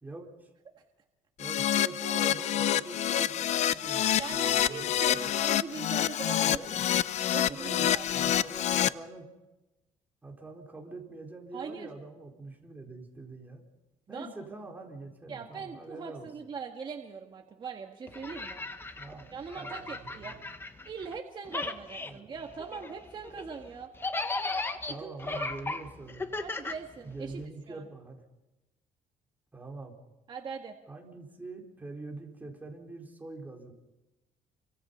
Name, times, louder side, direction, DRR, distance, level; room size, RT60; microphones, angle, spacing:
voice 1, 0.0-0.5 1.4-5.3 6.4-6.8 7.5-9.3 10.2-13.6 14.1-16.3 19.0-20.4 22.0-22.4 23.2-23.4 24.9-26.2 27.0-28.2 29.5-29.9 30.9-33.7, right 3 dB, 10° right, 0 dB, 4.4 m, -44 dB
Keyboard (musical), 1.4-8.9, left 11 dB, 55° left, 0.7 m, -27 dB
voice 2, 4.2-7.0 7.3-8.1 11.5-11.9 14.1-14.3 15.3-18.6 19.3-20.4 20.9-23.9 25.0-25.5 26.4-27.4 27.7-27.9 30.3-30.8, right 5 dB, 35° right, 3 dB, 1.7 m, -41 dB
sound 1, 18.1-21.2 21.4-27.4, left 3 dB, 15° left, 1.5 m, -37 dB
29.0 x 25.0 x 5.6 m, 1.0 s
cardioid pair, 140°, 14 cm